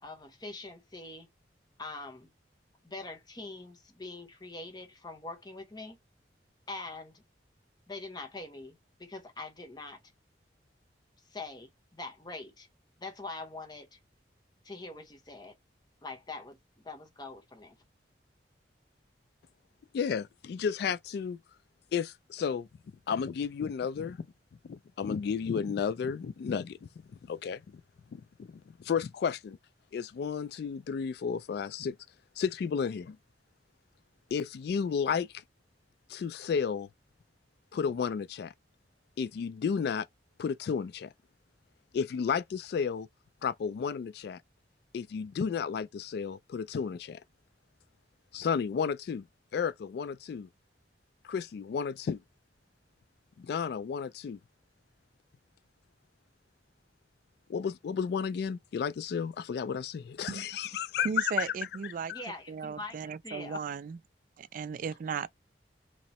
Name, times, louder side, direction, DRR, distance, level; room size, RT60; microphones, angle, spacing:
voice 1, 0.0-1.3 1.8-2.3 2.8-6.0 6.7-7.2 7.9-10.0 11.3-12.7 13.0-14.0 14.6-15.5 16.0-16.6 16.8-17.8 62.1-63.0 63.2-63.6, left 3 dB, 25° left, 1.0 m, -43 dB
voice 2, 19.9-21.4 21.9-22.7 23.1-24.2 24.6-26.8 27.2-27.6 28.1-29.6 29.9-32.0 32.4-33.2 34.3-35.4 36.1-36.9 37.7-38.5 39.2-40.1 40.4-41.1 41.9-43.1 43.4-44.4 44.9-47.2 48.3-49.2 49.5-50.5 51.2-52.2 53.4-54.4 57.5-61.5 61.8-62.2, left 6 dB, 60° left, 0.3 m, -32 dB
voice 3, 61.0-62.1 62.5-64.0 64.4-65.3, right 6 dB, 50° right, 0.3 m, -36 dB
3.0 x 2.8 x 4.1 m
head